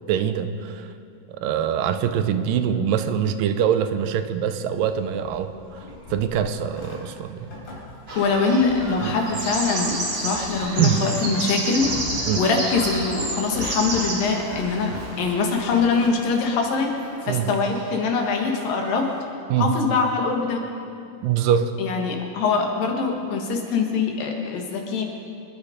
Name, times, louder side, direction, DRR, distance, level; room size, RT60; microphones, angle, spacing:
voice 1, 0.1-0.9 1.3-5.5 6.1-7.5 9.0-9.2 10.8-11.0 12.3-12.4 17.3-17.5 19.5-19.7 21.2-21.7, right 8 dB, 85° right, 10 dB, 2.4 m, -23 dB
Livestock farm animals working animals, 4.8-16.5, left 2 dB, 40° left, 5.0 m, -39 dB
sound 1, 8.1-19.2, right 1 dB, 25° right, 1.7 m, -40 dB
voice 2, 8.2-11.9 12.4-16.9 17.3-19.1 19.6-20.6 21.8-25.0, left 4 dB, 85° left, 2 dB, 3.5 m, -23 dB
sound 2, 9.3-14.2, right 2 dB, 40° right, 3.6 m, -29 dB
25.5 x 10.5 x 5.1 m, 2.4 s
omnidirectional pair, 3.9 m